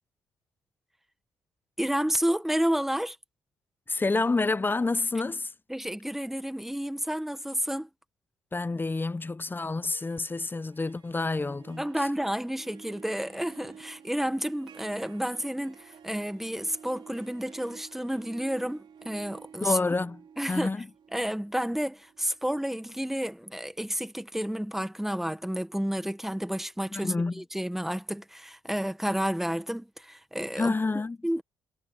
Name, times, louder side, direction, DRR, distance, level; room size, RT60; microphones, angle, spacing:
voice 1, 1.8-3.2 5.7-7.9 11.8-19.8 20.4-20.7 21.1-30.7 31.2-31.4, equal, 5° right, 1.5 m, -30 dB
voice 2, 3.9-5.5 8.5-12.1 19.6-20.2 20.5-20.9 26.9-27.4 30.6-31.2, left 3 dB, 20° left, 0.8 m, -28 dB
Harp, 9.7-23.6, right 7 dB, 60° right, 3.5 m, -52 dB
cardioid pair, 75°, 10 cm